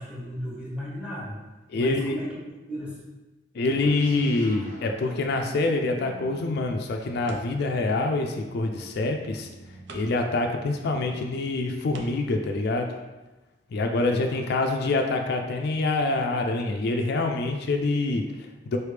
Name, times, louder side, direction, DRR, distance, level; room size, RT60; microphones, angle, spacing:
voice 1, 0.0-1.4 1.7-3.1 14.1-14.4, equal, 5° right, -5 dB, 1.1 m, -35 dB
voice 2, 1.7-2.2 3.5-12.9 13.7-18.8, left 2 dB, 60° left, 4 dB, 0.4 m, -26 dB
sound 1, 3.6-12.4, right 2 dB, 50° right, 1.2 m, -48 dB
sound 2, 5.0-5.9 7.2-7.8 9.1-9.2 9.8-10.3 11.1-11.2 11.9-12.4, right 3 dB, 70° right, 0.5 m, -45 dB
4.6 x 3.2 x 3.3 m, 1.1 s
head